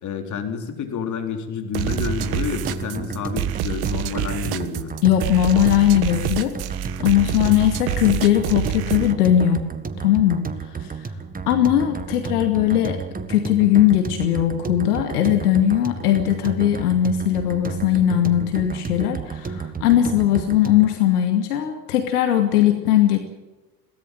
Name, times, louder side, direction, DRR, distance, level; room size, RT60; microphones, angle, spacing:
voice 1, 0.0-4.9, left 6 dB, 35° left, 5 dB, 4.2 m, -29 dB
sound 1, 1.7-20.9, right 5 dB, 15° right, 1.6 m, -32 dB
sound 2, 1.7-9.1, right 11 dB, 50° right, 1.4 m, -27 dB
voice 2, 5.0-6.5 7.0-9.7 10.0-11.1 11.5-13.0 13.3-23.2, left 11 dB, 70° left, 6 dB, 2.3 m, -19 dB
22.5 x 17.5 x 7.7 m, 1.1 s
figure-of-eight pair, 70°, 48 cm